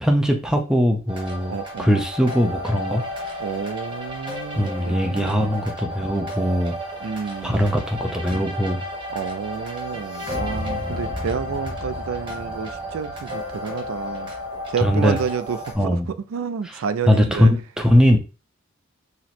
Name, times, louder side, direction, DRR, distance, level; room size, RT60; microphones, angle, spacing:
voice 1, 0.0-3.0 4.6-6.8 7.4-8.8 14.8-15.2 15.8-16.1 16.6-16.8 17.1-18.2, equal, 5° right, 0.6 m, -20 dB
sound 1, 1.1-15.7, left 1 dB, 25° right, 1.3 m, -32 dB
voice 2, 1.5-1.9 3.4-5.5 7.0-7.7 9.1-14.3 14.7-17.6, right 6 dB, 80° right, 0.3 m, -30 dB
2.9 x 2.9 x 4.2 m
head